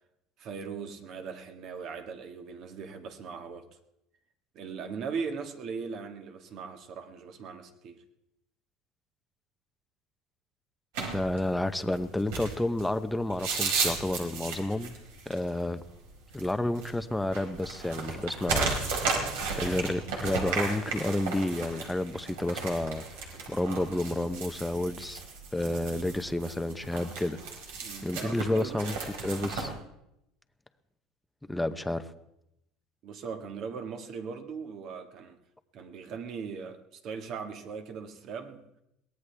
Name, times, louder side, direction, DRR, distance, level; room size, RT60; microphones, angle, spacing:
voice 1, 0.4-3.7 4.5-8.0 27.8-28.8 33.0-35.4 35.7-38.6, right 5 dB, 50° right, 1.7 m, -39 dB
sound 1, 10.9-29.7, right 4 dB, 85° right, 4.5 m, -35 dB
voice 2, 11.1-15.0 15.3-15.8 16.3-18.8 19.6-23.0 23.5-25.2 25.5-27.4 28.0-28.9 29.2-29.7 31.5-32.1, left 1 dB, 5° left, 0.7 m, -30 dB
22.5 x 18.0 x 3.4 m
cardioid pair, 140°, 0 cm